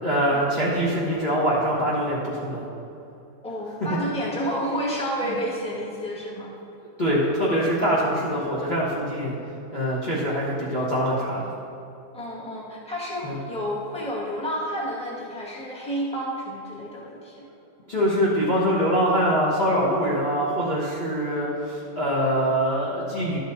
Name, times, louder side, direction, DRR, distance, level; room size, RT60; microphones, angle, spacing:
voice 1, 0.0-2.6 5.2-5.3 7.0-9.4 9.7-11.5 13.2-13.4 17.9-23.4, equal, 30° left, -9 dB, 1.3 m, -24 dB
voice 2, 3.4-6.5 12.1-17.5, equal, 5° left, -6 dB, 1.7 m, -30 dB
12.0 x 6.3 x 4.0 m, 2.7 s
omnidirectional pair, 1.7 m